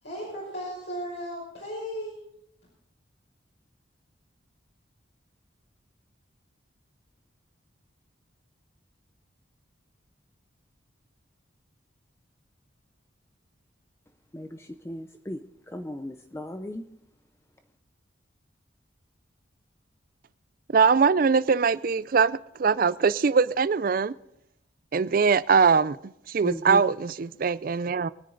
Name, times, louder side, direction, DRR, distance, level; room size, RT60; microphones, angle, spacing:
voice 1, 0.0-2.2, equal, 70° left, 5.8 m, -35 dB
voice 2, 14.3-16.9 26.4-26.8, left 1 dB, 15° left, 0.5 m, -36 dB
voice 3, 20.7-24.1 24.9-28.1, right 5 dB, 45° right, 0.4 m, -22 dB
23.5 x 10.0 x 3.9 m
head